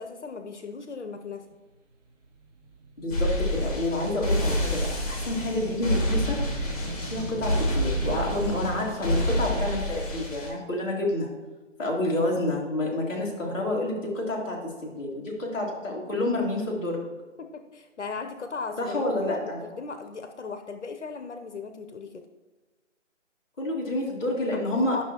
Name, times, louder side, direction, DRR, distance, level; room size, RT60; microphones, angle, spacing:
voice 1, 0.0-1.4 17.4-22.3 24.5-25.0, left 4 dB, 65° left, 7 dB, 0.8 m, -37 dB
sound 1, 2.2-8.7, right 4 dB, 65° right, 2.4 m, -37 dB
voice 2, 3.0-6.7 7.1-11.3 11.8-17.0 18.8-19.6 23.6-25.0, left 1 dB, 10° left, -11 dB, 1.7 m, -29 dB
sound 2, 3.1-10.5, equal, 30° left, 2.0 m, -28 dB
11.0 x 6.2 x 2.9 m, 1.3 s
hypercardioid pair, 175°, 38 cm